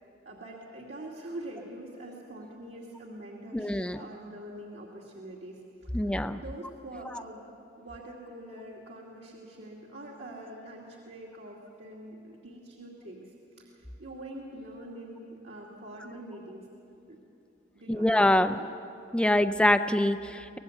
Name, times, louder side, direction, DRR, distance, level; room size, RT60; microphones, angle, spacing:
voice 1, 0.2-7.5 7.8-16.7 17.1-17.2 17.7-18.7, right 1 dB, 65° right, -3 dB, 2.5 m, -44 dB
voice 2, 3.5-4.0 5.9-6.4 17.9-18.6 19.1-20.6, left 1 dB, 5° left, 9 dB, 0.4 m, -24 dB
24.0 x 19.0 x 8.0 m, 2.7 s
head